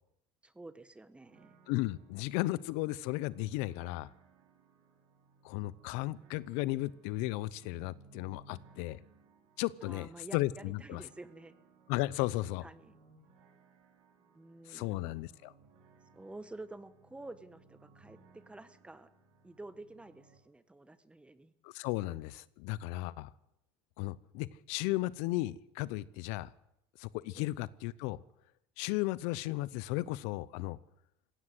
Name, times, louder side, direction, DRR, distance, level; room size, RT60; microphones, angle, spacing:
voice 1, 0.4-1.6 9.8-11.6 12.2-12.3 12.6-13.0 14.3-15.3 16.1-19.1 19.4-21.5 27.3-27.5, right 2 dB, 10° right, 13 dB, 1.4 m, -50 dB
sound 1, 1.2-20.4, right 4 dB, 75° right, 5.7 m, -63 dB
voice 2, 1.7-4.1 5.4-9.0 9.6-11.0 11.9-12.7 14.7-15.5 21.6-23.3 24.0-26.5 27.0-28.2 28.8-30.8, left 18 dB, 75° left, 19 dB, 0.8 m, -35 dB
20.0 x 16.0 x 8.1 m, 0.82 s
supercardioid pair, 110°, 12 cm